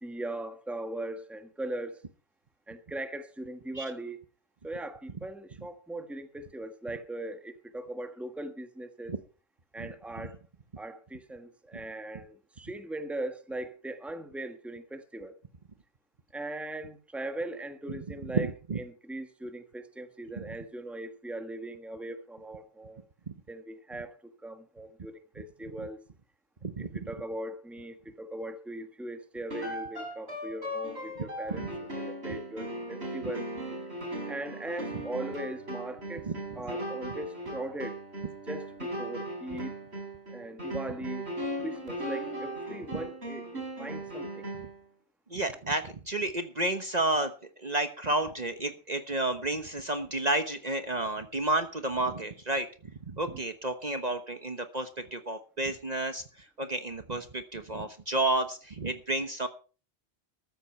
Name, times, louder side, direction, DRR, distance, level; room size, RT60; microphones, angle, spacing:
voice 1, 0.0-2.0 2.7-4.2 4.6-9.1 9.7-10.4 10.8-15.4 16.3-18.5 18.8-23.0 23.5-24.1 24.4-26.0 26.8-31.7 32.0-33.5 34.3-36.3 36.6-38.0 38.5-39.7 40.3-41.3 41.6-44.4 53.3-53.4, right 1 dB, ahead, 1.3 m, -39 dB
voice 2, 18.2-18.8 20.4-20.6 23.3-23.4 26.6-27.0 31.5-31.7 33.2-33.3 36.2-36.4 42.9-43.0 44.5-44.7 45.3-47.3 47.6-59.5, right 2 dB, 40° right, 1.2 m, -31 dB
sound 1, 29.5-44.8, right 1 dB, 65° right, 5.0 m, -38 dB
14.0 x 13.5 x 4.4 m
omnidirectional pair, 1.2 m